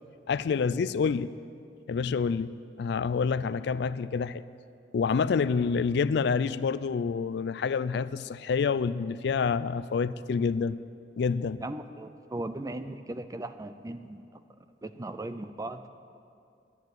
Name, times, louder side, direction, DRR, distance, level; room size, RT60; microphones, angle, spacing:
voice 1, 0.3-1.3 1.9-4.4 4.9-10.8 11.2-11.6, left 5 dB, 65° left, 16 dB, 0.4 m, -27 dB
voice 2, 11.6-14.4 14.8-15.9, right 2 dB, 20° right, 11 dB, 0.5 m, -38 dB
10.5 x 10.5 x 7.8 m, 2.4 s
head